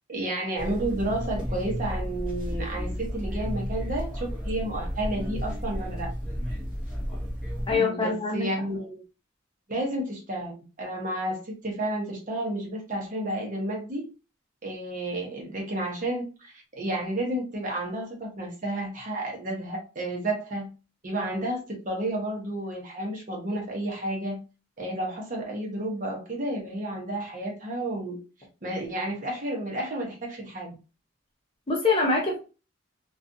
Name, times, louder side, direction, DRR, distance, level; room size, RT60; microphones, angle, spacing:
voice 1, 0.1-6.1 7.7-9.0 9.7-14.1 14.6-20.7 21.0-24.4 24.8-28.2 28.6-30.7, right 1 dB, 40° right, 0.8 m, -31 dB
sound 1, 0.6-7.8, equal, 5° right, 0.9 m, -32 dB
voice 2, 7.7-8.5 31.7-32.4, left 3 dB, 25° left, 0.6 m, -24 dB
2.4 x 2.3 x 2.6 m
head